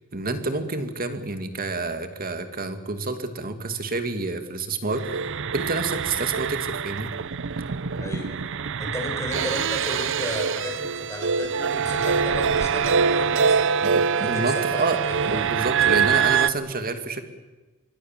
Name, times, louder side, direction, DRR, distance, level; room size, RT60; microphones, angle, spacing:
voice 1, 0.1-7.1 13.8-15.0 15.3-17.2, right 3 dB, 45° right, 8 dB, 2.4 m, -28 dB
sound 1, 4.9-16.5, right 6 dB, 60° right, 0.7 m, -24 dB
voice 2, 8.8-13.9 14.2-15.5, left 1 dB, 15° left, 1 dB, 6.7 m, -34 dB
26.0 x 24.0 x 7.5 m, 1.2 s
head